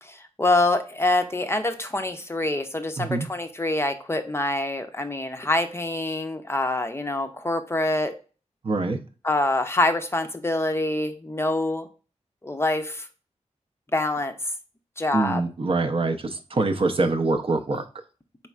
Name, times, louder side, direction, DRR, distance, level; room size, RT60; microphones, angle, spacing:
voice 1, 0.0-8.1 9.2-11.9 12.4-13.1 13.9-14.4 15.0-15.4, left 2 dB, 20° left, 7 dB, 0.5 m, -25 dB
voice 2, 8.6-9.0 15.1-17.8, right 3 dB, 50° right, 5 dB, 0.5 m, -24 dB
4.2 x 4.1 x 2.3 m, 0.35 s
wide cardioid pair, 120°, 12 cm